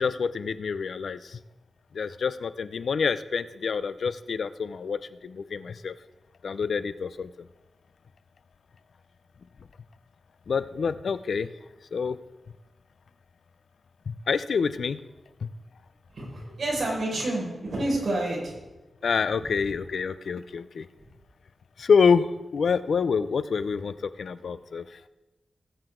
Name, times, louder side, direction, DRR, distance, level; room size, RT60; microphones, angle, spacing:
voice 1, 0.0-1.4 1.9-5.9 6.4-7.3 10.5-11.5 11.9-12.2 14.1-15.0 15.4-15.5 19.0-20.9 21.8-24.8, left 5 dB, 65° left, 14 dB, 0.5 m, -27 dB
voice 2, 16.1-18.5, right 1 dB, 50° right, -3 dB, 5.0 m, -28 dB
19.0 x 7.9 x 3.8 m, 1.1 s
wide cardioid pair, 145°, 0 cm